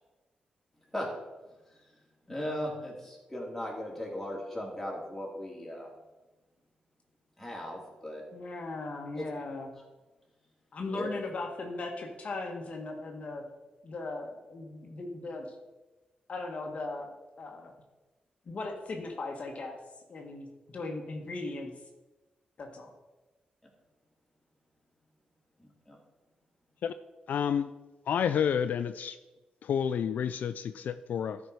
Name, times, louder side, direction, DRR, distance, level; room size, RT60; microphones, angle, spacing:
voice 1, 2.3-5.9 7.4-8.2 9.1-9.3 10.9-11.1 25.6-26.0, left 1 dB, 5° left, -3 dB, 2.8 m, -37 dB
voice 2, 8.3-9.7 10.7-13.4 13.8-15.5 16.3-17.1 17.4-17.7 18.5-19.8 20.1-21.7 22.6-22.9, left 3 dB, 50° left, 2 dB, 1.4 m, -38 dB
voice 3, 27.3-27.7 28.1-29.2 29.6-31.4, left 8 dB, 75° left, 11 dB, 0.3 m, -29 dB
12.5 x 5.1 x 4.6 m, 1.1 s
cardioid pair, 100°, 3 cm